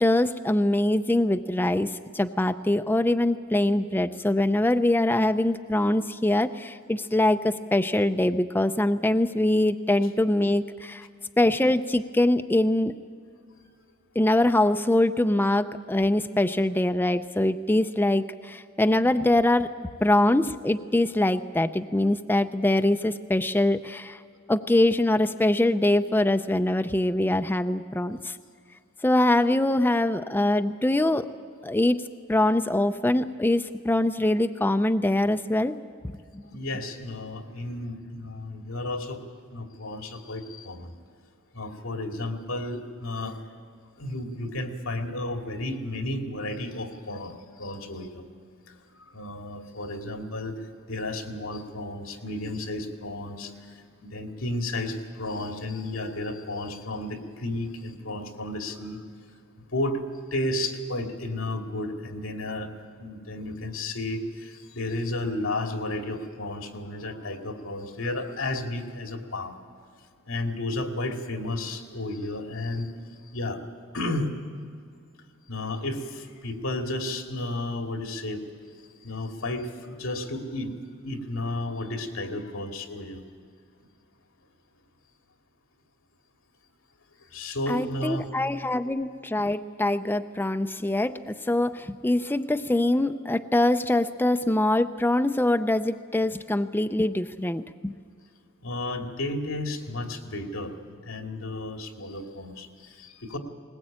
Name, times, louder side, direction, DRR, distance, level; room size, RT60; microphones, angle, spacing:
voice 1, 0.0-11.1 11.4-12.9 14.2-19.7 20.0-24.2 24.5-28.4 29.0-31.3 31.6-35.8 36.0-36.4 87.7-97.9, left 1 dB, 10° left, 9 dB, 0.5 m, -23 dB
voice 2, 36.4-39.2 39.5-40.9 41.5-43.4 44.0-48.2 48.7-50.5 50.9-59.0 59.7-60.0 60.3-62.7 63.0-69.6 70.2-72.9 73.3-73.6 73.9-74.3 75.5-78.4 79.0-80.8 81.0-83.2 87.2-88.3 98.6-103.4, left 1 dB, 90° left, 4 dB, 2.4 m, -33 dB
20.5 x 20.0 x 8.8 m, 2.1 s
head